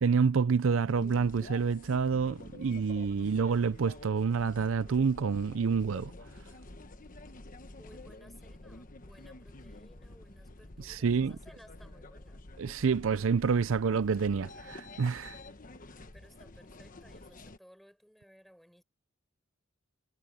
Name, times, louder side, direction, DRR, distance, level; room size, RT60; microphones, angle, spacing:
voice 1, 0.0-6.1 10.8-11.3 12.6-15.4, right 5 dB, 75° right, 0.5 m, -28 dB
sound 1, 0.9-17.6, left 2 dB, 40° left, 1.2 m, -49 dB
voice 2, 7.7-12.4 16.1-18.8, equal, ahead, 5.2 m, -59 dB
head